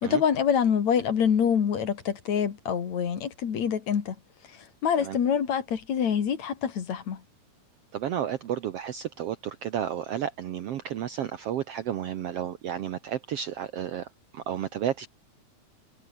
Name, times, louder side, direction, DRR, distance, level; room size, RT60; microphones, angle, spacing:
voice 1, 0.0-4.2 4.8-7.2, left 7 dB, 60° left, 3.4 m, -25 dB
voice 2, 7.9-14.1 14.3-15.1, right 10 dB, 65° right, 1.6 m, -32 dB
omnidirectional pair, 3.8 m